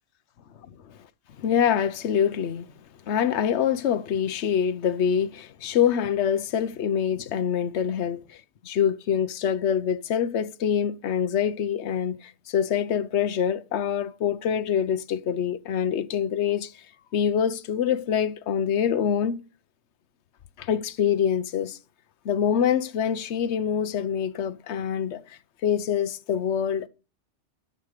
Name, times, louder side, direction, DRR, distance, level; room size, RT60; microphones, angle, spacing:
voice 1, 1.4-2.7 3.1-8.4 8.6-16.8 17.1-19.4 20.6-21.8 22.2-26.9, left 8 dB, 70° left, 1.1 m, -25 dB
12.5 x 6.5 x 6.6 m
omnidirectional pair, 1.2 m